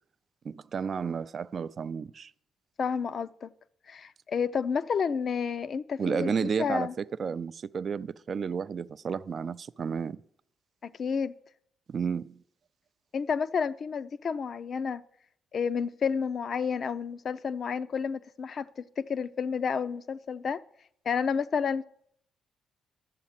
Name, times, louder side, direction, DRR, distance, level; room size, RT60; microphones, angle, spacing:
voice 1, 0.4-2.3 6.0-10.2 11.9-12.4, right 6 dB, 45° right, 0.4 m, -32 dB
voice 2, 2.8-3.5 3.9-6.9 10.8-11.3 13.1-15.0 15.5-20.6 21.1-21.8, left 6 dB, 50° left, 0.5 m, -30 dB
11.5 x 7.5 x 7.3 m
cardioid pair, 90°, 0 cm